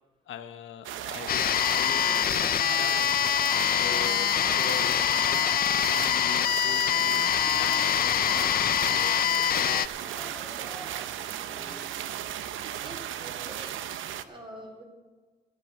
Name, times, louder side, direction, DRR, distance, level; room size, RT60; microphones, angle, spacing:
voice 1, 0.3-3.3 3.8-9.9 12.1-12.4, left 9 dB, 75° left, 0.8 m, -42 dB
sound 1, 0.8-14.2, right 11 dB, 80° right, 0.7 m, -36 dB
sound 2, 1.3-9.9, left 10 dB, 50° left, 0.4 m, -25 dB
sound 3, 1.7-6.2 6.7-11.9, equal, ahead, 0.5 m, -47 dB
voice 2, 12.8-14.8, right 1 dB, 25° right, 3.8 m, -46 dB
14.0 x 9.1 x 6.4 m
cardioid pair, 90°, 20 cm